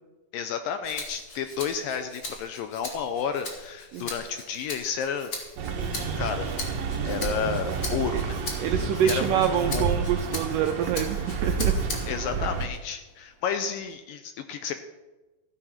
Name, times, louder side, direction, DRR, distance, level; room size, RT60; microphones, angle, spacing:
voice 1, 0.3-5.3 6.2-6.5 7.0-8.4 8.7-9.4 9.7-9.9 12.1-14.7, left 7 dB, 75° left, 8 dB, 2.1 m, -31 dB
Rattle (instrument), 0.8-12.3 12.7-13.9, left 3 dB, 40° left, 1.9 m, -40 dB
sound 1, 5.6-12.7, right 5 dB, 60° right, 1.8 m, -29 dB
voice 2, 8.6-11.8, right 9 dB, 80° right, 6 dB, 1.9 m, -26 dB
14.0 x 8.7 x 5.8 m, 1.1 s
omnidirectional pair, 4.6 m